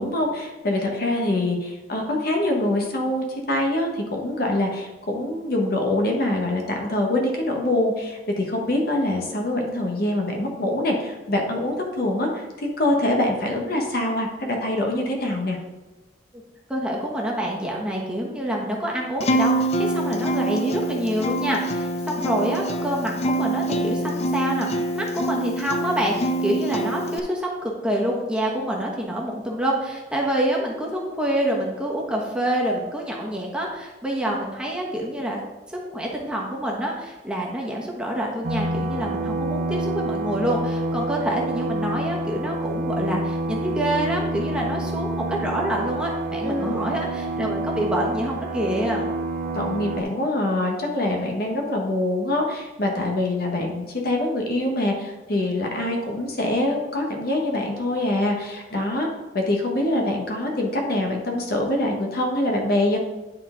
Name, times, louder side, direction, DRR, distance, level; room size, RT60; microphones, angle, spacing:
voice 1, 0.0-15.6 46.4-46.9 49.5-59.1 59.3-63.0, left 1 dB, 60° left, 1 dB, 1.3 m, -24 dB
voice 2, 16.7-35.4 35.7-49.1, right 1 dB, 5° right, -2 dB, 1.2 m, -27 dB
Acoustic guitar, 19.2-27.2, right 1 dB, 40° left, 0.5 m, -25 dB
sound 1, 38.4-50.0, right 2 dB, 50° right, 0.6 m, -28 dB
10.5 x 4.2 x 3.8 m, 1.1 s
head